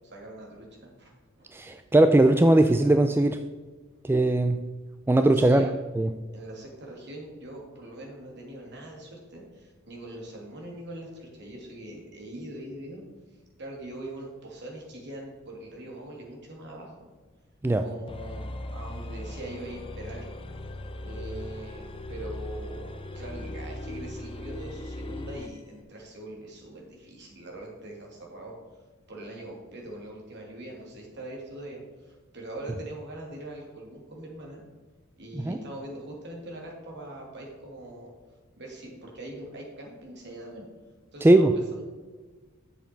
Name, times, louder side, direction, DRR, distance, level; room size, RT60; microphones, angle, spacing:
voice 1, 0.0-1.1 1.4-1.5 5.3-5.7 6.3-13.0 13.6-17.1 17.8-20.3 21.0-28.5 29.1-34.6 35.2-38.1 38.6-40.6 41.1-41.8, right 1 dB, 55° right, -1 dB, 2.7 m, -42 dB
voice 2, 1.5-3.4 4.0-4.6 5.1-5.7 6.0-6.1 17.6-17.8 35.4-35.6 41.2-41.5, right 1 dB, 10° right, 7 dB, 0.3 m, -19 dB
sound 1, 18.1-25.6, left 1 dB, 25° left, 0.6 m, -38 dB
8.3 x 6.8 x 4.5 m, 1.4 s
head